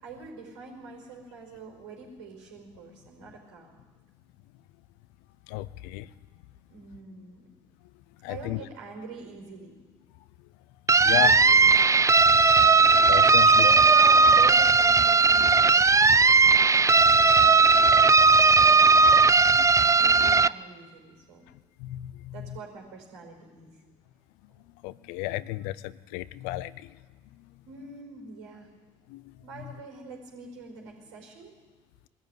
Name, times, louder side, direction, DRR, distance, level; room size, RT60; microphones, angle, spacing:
voice 1, 0.0-3.8 6.7-7.4 8.3-9.7 11.1-12.1 13.5-19.2 20.0-21.4 22.3-23.7 27.6-28.7 29.4-31.5, right 5 dB, 90° right, 0 dB, 5.1 m, -43 dB
voice 2, 5.5-6.1 8.2-8.6 11.0-11.3 12.4-12.5 12.9-13.6 19.5-19.7 21.8-22.5 24.8-26.9 29.1-29.3, left 16 dB, 80° left, 18 dB, 0.6 m, -33 dB
sound 1, 10.9-20.5, right 4 dB, 20° right, 0.5 m, -18 dB
22.0 x 14.0 x 9.3 m, 1.4 s
hypercardioid pair, 50°, 15 cm